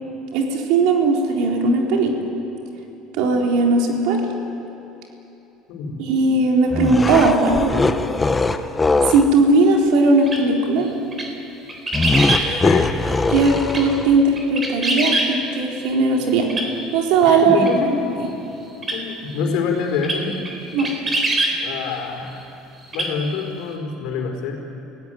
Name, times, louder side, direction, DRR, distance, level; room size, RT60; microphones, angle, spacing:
voice 1, 0.3-2.2 3.2-4.2 6.0-7.7 9.1-10.9 13.3-16.5 16.9-17.6 20.7-20.9, right 3 dB, 70° right, 0 dB, 4.2 m, -18 dB
sound 1, 6.7-9.3 11.9-14.2, left 3 dB, 10° left, 0.8 m, -21 dB
sound 2, 10.3-10.4 11.1-11.3 11.7-12.4 13.6-13.8 14.4-15.3 16.5-16.7 17.6-17.7 18.8-19.0 20.0-20.2 20.4-20.5 20.8-21.5 22.8-23.1 23.4-23.5, right 2 dB, 20° right, 3.8 m, -22 dB
voice 2, 12.6-13.0 17.2-17.9 18.9-20.4 21.6-22.4 22.9-24.6, left 5 dB, 70° left, 3 dB, 4.6 m, -25 dB
30.0 x 16.5 x 9.4 m, 3.0 s
cardioid pair, 160°, 0 cm